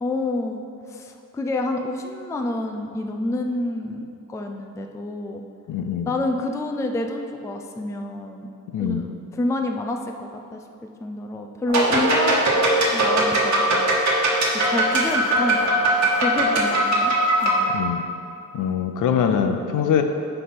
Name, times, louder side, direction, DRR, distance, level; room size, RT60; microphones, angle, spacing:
voice 1, 0.0-5.4 6.1-8.5 8.8-10.6 11.0-12.5 12.9-13.8 14.5-15.9 16.1-17.1 17.4-17.7, left 2 dB, 10° left, 4 dB, 0.3 m, -28 dB
voice 2, 5.7-6.1 8.7-9.1 17.7-18.1 18.5-20.0, left 8 dB, 75° left, 6 dB, 0.6 m, -23 dB
sound 1, 11.7-17.6, right 1 dB, 60° right, 1.2 m, -20 dB
9.5 x 3.3 x 5.8 m, 2.5 s
wide cardioid pair, 165°, 32 cm